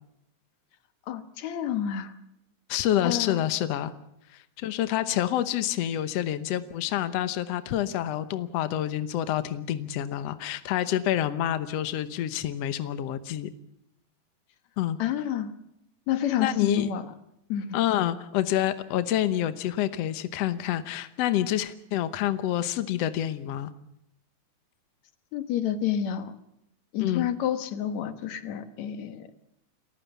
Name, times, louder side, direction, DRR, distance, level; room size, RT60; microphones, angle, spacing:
voice 1, 1.1-2.1 3.0-3.4 15.0-15.5 16.1-17.1 17.5-17.8 25.3-26.4 26.9-29.3, left 9 dB, 60° left, 10 dB, 2.2 m, -29 dB
voice 2, 2.7-3.9 4.3-13.5 14.8-15.0 16.4-16.9 17.7-23.7 27.0-27.3, left 12 dB, 80° left, 12 dB, 1.4 m, -27 dB
29.0 x 15.0 x 7.1 m, 0.81 s
omnidirectional pair, 4.3 m